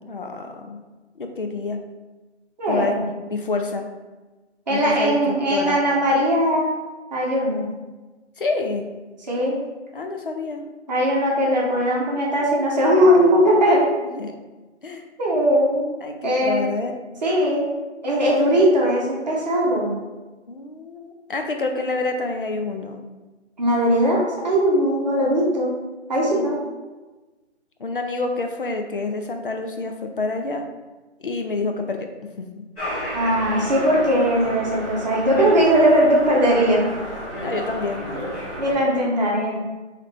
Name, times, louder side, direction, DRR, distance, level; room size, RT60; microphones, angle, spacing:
voice 1, 0.1-0.8 1.2-1.8 2.7-2.9 3.3-3.9 4.7-5.8 8.4-8.9 9.9-10.6 14.2-14.3 14.8-15.0 16.0-16.9 20.5-23.0 26.2-26.6 27.8-30.6 31.2-32.1 32.4-32.6 37.4-38.1, left 3 dB, 50° left, 4 dB, 0.4 m, -27 dB
voice 2, 2.6-3.0 4.7-6.7 7.1-7.6 9.3-9.5 10.9-13.8 15.2-15.9 16.2-16.6 17.2-17.7 18.0-19.9 23.6-25.7 26.1-26.6 33.1-36.8 38.6-39.6, equal, 35° right, -4 dB, 1.0 m, -19 dB
sound 1, 32.7-38.7, equal, 10° left, 1.5 m, -31 dB
3.6 x 3.2 x 3.3 m, 1.2 s
hypercardioid pair, 170°, 36 cm